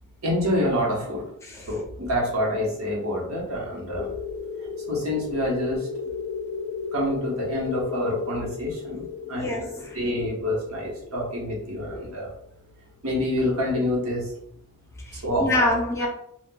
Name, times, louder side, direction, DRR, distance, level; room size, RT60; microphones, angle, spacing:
voice 1, 0.2-1.2 1.7-4.1 4.9-5.8 6.9-9.0 9.3-9.6 9.9-12.3 13.0-14.2 15.2-15.5, left 1 dB, 80° right, -3 dB, 1.1 m, -27 dB
sound 1, 4.0-12.3, left 5 dB, 50° left, 0.3 m, -35 dB
voice 2, 9.3-10.0 11.9-12.0 15.0-16.1, left 1 dB, 15° left, -2 dB, 0.6 m, -26 dB
4.2 x 2.3 x 2.2 m, 0.72 s
head